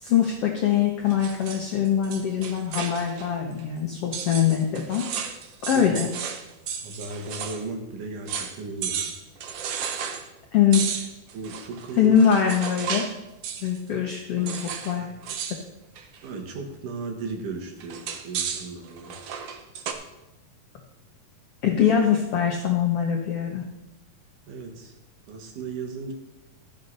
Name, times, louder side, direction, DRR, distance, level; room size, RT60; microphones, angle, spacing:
voice 1, 0.0-5.0 5.6-6.1 10.5-10.8 12.0-13.0 13.6-14.5 14.8-15.0 21.6-23.6, left 8 dB, 70° left, 1 dB, 1.4 m, -22 dB
sound 1, 1.1-3.3 3.6-3.7 4.1-7.7 7.9-8.0 8.3-8.6 8.8-10.3 10.7-13.2 13.4-13.8 14.5-15.0 15.2-15.6 16.0-16.3 17.8-19.9, right 7 dB, 85° right, 1.3 m, -33 dB
voice 2, 6.8-9.1 11.3-12.2 14.4-15.1 16.2-19.2 24.5-24.9 25.3-26.1, right 4 dB, 70° right, 3 dB, 2.9 m, -36 dB
13.5 x 6.6 x 5.4 m, 0.96 s
omnidirectional pair, 4.0 m